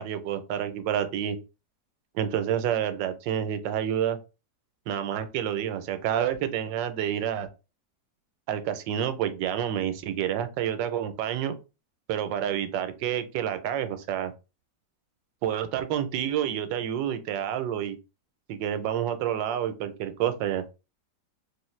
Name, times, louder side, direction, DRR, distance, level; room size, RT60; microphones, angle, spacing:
voice 1, 0.0-1.4 2.1-4.2 4.9-7.5 8.5-11.6 12.1-14.3 15.4-18.0 18.5-20.6, right 10 dB, 90° right, 9 dB, 1.3 m, -29 dB
3.3 x 2.5 x 3.1 m, 0.30 s
omnidirectional pair, 1.9 m